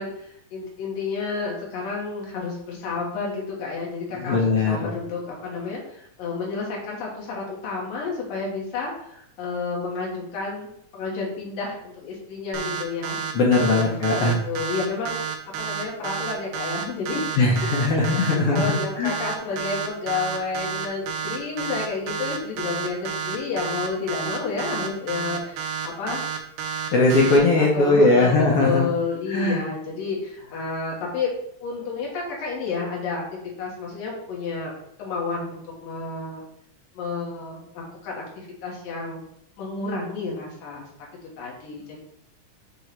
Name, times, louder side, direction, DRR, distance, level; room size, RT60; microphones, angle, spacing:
voice 1, 0.0-13.2 13.8-13.9 14.2-17.3 17.9-26.4 27.5-31.3 31.6-34.7 35.0-36.4 36.9-39.2 39.6-40.9 41.4-42.0, left 4 dB, 85° left, -3 dB, 3.1 m, -30 dB
voice 2, 4.1-4.9 13.3-14.4 17.4-18.7 19.0-19.1 26.9-28.9 29.3-29.6, left 2 dB, 65° left, -2 dB, 1.4 m, -19 dB
sound 1, 12.5-27.4, right 6 dB, 70° right, 1.9 m, -30 dB
7.5 x 3.1 x 4.6 m, 0.74 s
omnidirectional pair, 3.8 m